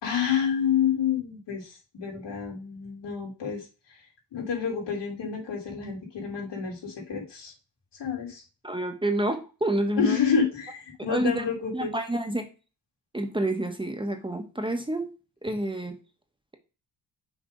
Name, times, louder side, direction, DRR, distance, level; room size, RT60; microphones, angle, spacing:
voice 1, 0.0-3.6 4.3-7.5 8.0-8.4 10.0-11.9, left 7 dB, 75° left, 0 dB, 3.3 m, -28 dB
voice 2, 8.6-10.2 11.1-11.4 11.7-12.5 13.1-15.1 15.4-16.0, right 1 dB, 10° right, 5 dB, 1.1 m, -28 dB
6.3 x 3.6 x 5.1 m, 0.31 s
cardioid pair, 100°, 43 cm